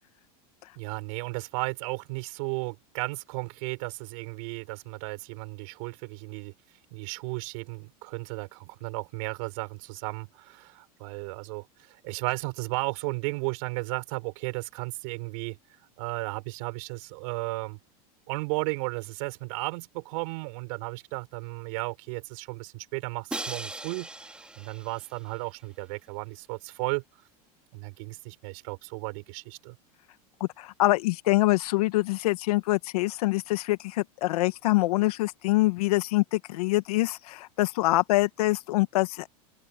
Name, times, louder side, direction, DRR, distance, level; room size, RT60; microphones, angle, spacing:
voice 1, 0.7-6.5 6.9-15.6 16.0-17.8 18.3-27.0 27.7-29.8, right 29 dB, 55° right, 6.6 m, -34 dB
Crash cymbal, 23.3-25.3, right 2 dB, 5° right, 3.0 m, -39 dB
voice 2, 30.4-39.3, left 19 dB, 75° left, 1.9 m, -25 dB
open air
supercardioid pair, 155°, 20 cm